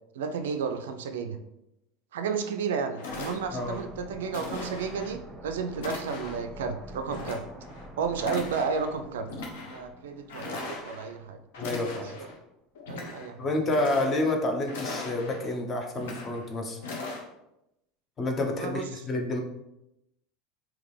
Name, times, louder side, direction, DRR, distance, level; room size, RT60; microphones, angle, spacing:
voice 1, 0.1-1.4 2.1-7.4 8.0-9.3 9.7-11.4 12.2-12.3 12.9-13.5 18.5-18.9, right 5 dB, 65° right, 8 dB, 0.3 m, -32 dB
sound 1, 2.5-2.6 3.0-3.8 4.3-5.1 5.8-6.5 7.1-7.9 8.2-8.9 9.3-9.8 10.3-11.1 11.5-12.3 12.7-13.3 13.6-14.4 14.7-15.5 15.9-16.5 16.8-17.2, left 2 dB, 65° left, 0.8 m, -39 dB
sound 2, 3.1-11.8 12.1-12.2, right 1 dB, 15° right, 0.7 m, -47 dB
voice 2, 11.6-12.1 13.4-16.8 18.2-19.4, left 2 dB, 30° left, 3 dB, 0.7 m, -29 dB
3.7 x 2.9 x 3.2 m, 0.88 s
figure-of-eight pair, 75°, 0 cm